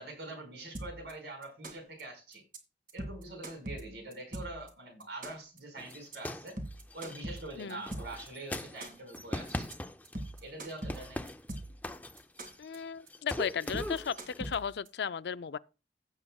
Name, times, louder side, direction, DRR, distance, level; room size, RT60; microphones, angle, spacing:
voice 1, 0.0-2.4 2.9-6.6 6.9-9.7 10.4-11.3, right 2 dB, 70° right, 4.8 m, -44 dB
sound 1, 0.7-1.1 1.4-2.0 2.3-2.6 2.9-4.7 5.0-5.6 5.9-6.2 6.5-8.3 8.6-9.2 9.5-9.7 10.0-11.9 12.2-12.8 13.1-13.3 13.6-14.9, right 1 dB, 50° right, 2.0 m, -41 dB
sound 2, 5.8-10.4 10.7-12.8 13.1-14.6, left 1 dB, 10° left, 0.5 m, -41 dB
voice 2, 12.6-15.6, left 7 dB, 70° left, 0.4 m, -35 dB
16.0 x 7.3 x 2.3 m
head